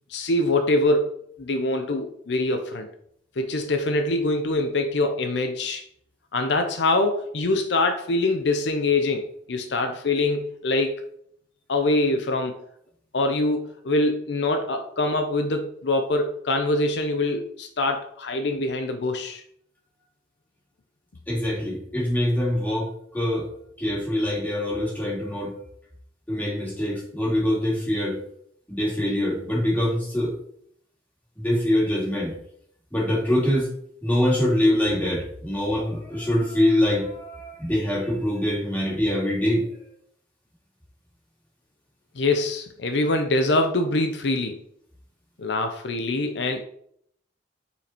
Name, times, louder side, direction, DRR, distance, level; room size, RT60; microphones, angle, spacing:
voice 1, 0.1-1.1 1.4-2.9 3.4-5.8 6.3-10.9 11.7-12.6 13.1-19.4 42.1-44.6 45.4-46.6, left 2 dB, 70° left, 6 dB, 0.6 m, -24 dB
voice 2, 21.3-23.5 23.8-25.5 26.3-28.2 28.7-30.3 31.4-32.3 32.9-33.7 34.0-39.6, left 1 dB, 10° left, -5 dB, 2.3 m, -24 dB
5.7 x 4.2 x 4.4 m, 0.68 s
head